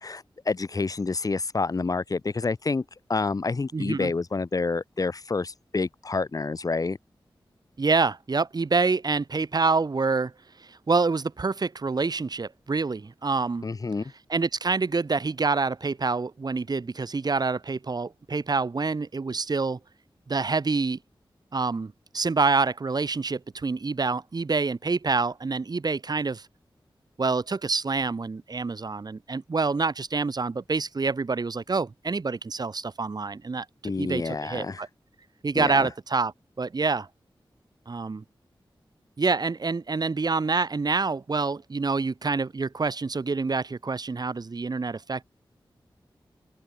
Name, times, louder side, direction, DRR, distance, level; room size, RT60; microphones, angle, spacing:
voice 1, 0.0-2.8 3.1-7.0 13.6-14.1 33.8-34.8 35.5-35.9, left 3 dB, 40° left, 0.7 m, -28 dB
voice 2, 3.7-4.1 7.8-10.3 10.6-13.7 14.3-19.8 20.3-21.0 21.5-26.5 27.2-34.9 35.4-36.3 36.6-37.1 37.9-38.2 39.2-45.2, right 4 dB, 50° right, 1.2 m, -27 dB
open air
wide cardioid pair, 80°, 9 cm